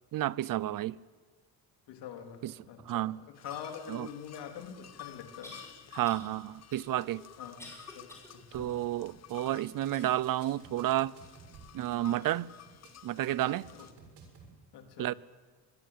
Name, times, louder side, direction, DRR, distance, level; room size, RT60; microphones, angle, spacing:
voice 1, 0.1-1.0 2.4-2.5 2.9-3.2 3.9-4.1 5.9-7.2 8.5-11.1 11.7-12.5 13.0-13.7 15.0-15.1, right 13 dB, 55° right, 0.7 m, -31 dB
voice 2, 1.9-5.6 7.4-8.8 13.6-13.9 14.7-15.2, left 8 dB, 90° left, 3.5 m, -46 dB
sound 1, 3.3-13.9, left 10 dB, 40° left, 1.0 m, -52 dB
sound 2, 5.4-5.7 6.0-6.3 6.7-8.3 8.8-8.9 9.9-10.7 11.2-11.4 12.1-12.2, left 1 dB, 5° left, 6.4 m, -51 dB
sound 3, 8.5-8.8 9.1-9.4 9.7-9.9 10.2-11.8 12.1-12.4 12.7-12.9 13.2-14.5, right 5 dB, 80° right, 6.8 m, -54 dB
25.5 x 22.0 x 8.8 m
cardioid pair, 150°, 39 cm